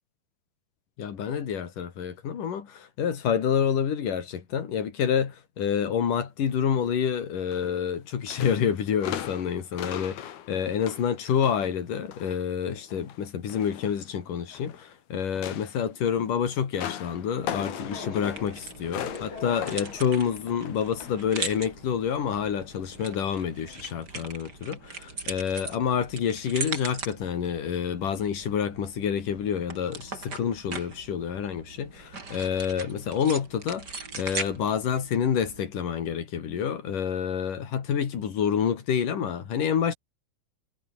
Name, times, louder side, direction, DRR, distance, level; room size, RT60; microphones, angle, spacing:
voice 1, 1.0-39.9, left 8 dB, 60° left, 4.3 m, -28 dB
sound 1, 7.5-8.0 8.3-12.4 12.8-14.9 15.2-21.3 21.7-21.9 22.9-23.1 23.7-23.8, left 11 dB, 75° left, 3.8 m, -39 dB
sound 2, 17.4-24.0, left 4 dB, 30° left, 5.1 m, -44 dB
sound 3, 18.4-35.7, right 4 dB, 25° right, 3.9 m, -40 dB
omnidirectional pair, 4.5 m